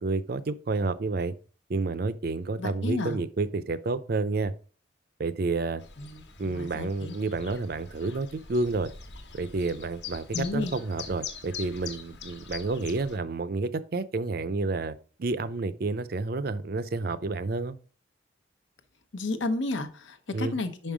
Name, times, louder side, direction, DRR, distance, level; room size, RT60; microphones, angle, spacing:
voice 1, 0.0-1.3 1.7-4.5 5.2-5.8 6.4-8.9 9.4-17.8 20.3-20.6, right 3 dB, 50° right, 0.5 m, -30 dB
voice 2, 2.6-3.2 6.0-7.2 10.3-10.7 19.1-20.9, left 2 dB, 80° left, 1.0 m, -32 dB
Chirp tweet, 5.8-13.2, left 6 dB, 65° left, 1.3 m, -43 dB
5.4 x 5.3 x 4.9 m
head